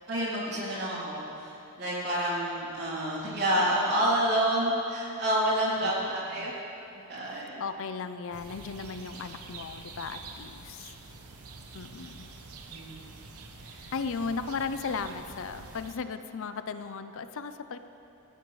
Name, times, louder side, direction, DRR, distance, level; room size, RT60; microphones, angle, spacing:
voice 1, 0.1-6.5 7.1-7.6 12.7-13.0 13.6-13.9, right 1 dB, 50° right, -6 dB, 3.2 m, -29 dB
voice 2, 7.2-10.9 11.7-12.3 13.9-17.8, left 5 dB, 60° left, 10 dB, 0.5 m, -36 dB
sound 1, 8.3-15.9, right 3 dB, 85° right, 1.0 m, -46 dB
15.5 x 13.5 x 3.2 m, 2.9 s
head